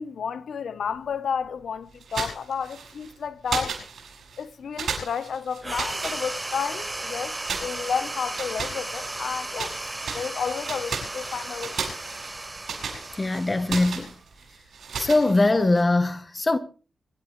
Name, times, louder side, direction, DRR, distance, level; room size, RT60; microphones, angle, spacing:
voice 1, 0.0-3.8 4.4-9.8 10.1-11.8, left 6 dB, 65° left, 0.9 m, -31 dB
sound 1, 2.0-3.1 3.5-4.4 4.8-6.9 7.4-9.8 10.0-15.8, right 5 dB, 75° right, 7.2 m, -35 dB
sound 2, 5.6-14.5, right 2 dB, 15° right, 1.0 m, -35 dB
voice 2, 13.2-14.1 15.0-16.6, left 2 dB, 20° left, 1.1 m, -21 dB
26.0 x 12.5 x 3.2 m
wide cardioid pair, 170°, 0 cm